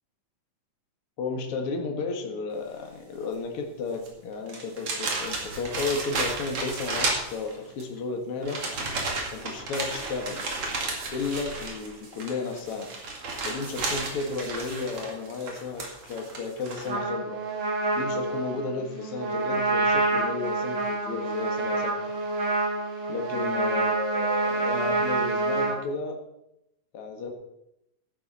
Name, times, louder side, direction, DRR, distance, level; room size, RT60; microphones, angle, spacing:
voice 1, 1.2-8.6 9.3-10.4 11.1-12.9 13.4-17.4 17.9-21.9 23.1-26.2 26.9-27.3, left 4 dB, 50° left, 3 dB, 2.1 m, -33 dB
sound 1, 3.9-4.1 4.5-7.8 8.4-16.9, right 3 dB, 45° right, 3.0 m, -33 dB
Trumpet, 16.9-25.7, right 3 dB, 65° right, 5.2 m, -27 dB
14.5 x 12.0 x 4.3 m, 0.85 s
omnidirectional pair, 3.9 m